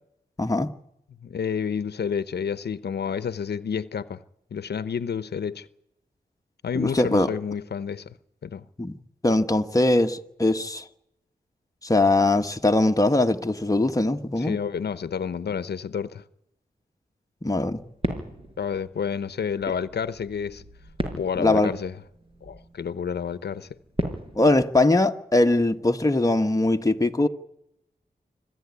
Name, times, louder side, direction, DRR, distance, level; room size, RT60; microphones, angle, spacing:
voice 1, 0.4-0.7 6.7-7.3 8.8-9.0 9.2-10.8 11.8-14.6 17.4-17.8 21.4-21.7 24.3-27.3, left 2 dB, 20° left, 1.5 m, -21 dB
voice 2, 1.2-4.2 4.5-5.7 6.6-8.1 8.4-8.6 14.4-16.2 18.6-20.6 21.1-22.0 22.4-23.8, left 7 dB, 85° left, 0.9 m, -30 dB
sound 1, 17.6-24.6, right 1 dB, 35° right, 6.3 m, -36 dB
26.0 x 14.5 x 9.8 m
wide cardioid pair, 90°, 17 cm